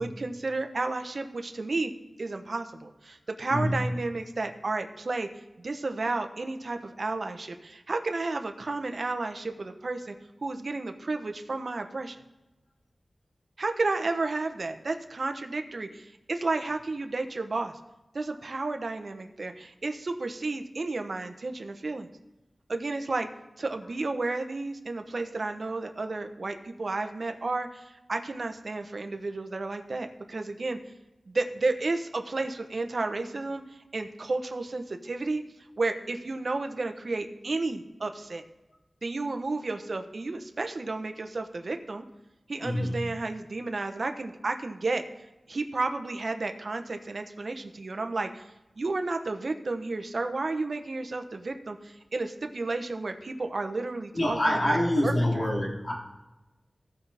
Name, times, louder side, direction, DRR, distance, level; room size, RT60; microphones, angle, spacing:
voice 1, 0.0-1.9 2.2-5.3 5.6-10.1 10.4-12.2 13.6-17.7 18.1-22.1 22.7-23.3 23.6-30.8 31.3-33.6 33.9-35.4 35.8-38.4 39.0-42.0 42.5-45.0 45.5-48.5 48.8-54.8 55.0-55.4, right 3 dB, 65° right, 6 dB, 1.0 m, -32 dB
voice 2, 42.6-42.9 54.1-55.9, left 1 dB, 65° left, -4 dB, 3.2 m, -26 dB
16.5 x 5.7 x 3.5 m, 1.0 s
cardioid pair, 45°, 0 cm